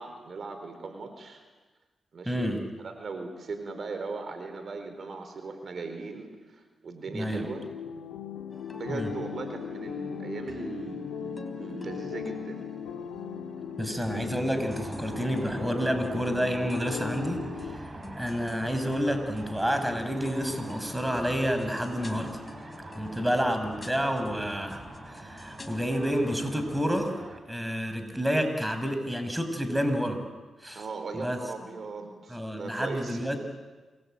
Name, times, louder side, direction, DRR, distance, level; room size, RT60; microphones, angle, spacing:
voice 1, 0.0-1.4 2.1-2.5 2.8-7.7 8.7-12.7 30.7-33.3, right 3 dB, 60° right, 7 dB, 4.3 m, -38 dB
voice 2, 2.3-2.6 7.1-7.5 8.9-9.1 13.8-17.9 18.2-22.4 22.9-27.2 27.5-30.2 30.6-30.8 31.1-31.4 32.3-33.4, equal, 10° right, 7 dB, 5.9 m, -29 dB
sound 1, 7.3-17.8, left 7 dB, 90° left, 2.4 m, -38 dB
sound 2, 8.5-27.2, left 2 dB, 30° left, 4.3 m, -47 dB
sound 3, 14.6-27.4, right 2 dB, 35° right, 5.0 m, -45 dB
28.0 x 22.0 x 9.0 m, 1.3 s
supercardioid pair, 50°, 0 cm